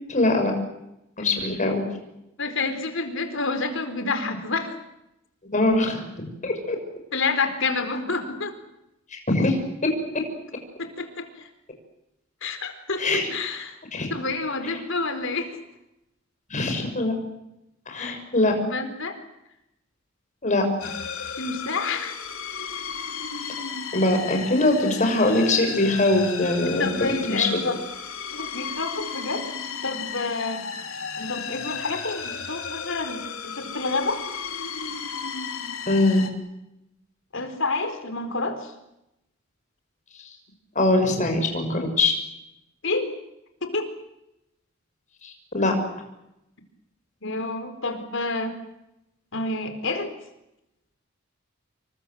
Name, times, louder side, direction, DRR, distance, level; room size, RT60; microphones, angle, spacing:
voice 1, 0.1-0.5 1.2-1.8 5.5-6.0 6.4-6.8 9.1-9.6 13.0-13.3 13.9-14.1 14.6-14.7 16.5-17.1 17.9-18.5 20.4-20.6 23.9-27.5 35.9-36.3 40.7-42.1 45.2-45.7, left 2 dB, 35° left, 4 dB, 6.3 m, -22 dB
voice 2, 2.4-4.8 7.1-8.6 10.8-11.5 12.4-13.8 14.1-15.6 18.0-18.1 18.6-19.2 21.4-22.2 26.7-27.8 28.3-29.4 29.8-30.7 31.2-34.2 37.3-38.7 42.8-43.2 43.6-43.9 47.2-48.5 49.3-50.1, left 3 dB, 65° left, 8 dB, 4.3 m, -29 dB
sound 1, 20.8-36.3, left 6 dB, 90° left, 3.5 m, -34 dB
27.5 x 24.0 x 7.9 m, 0.88 s
head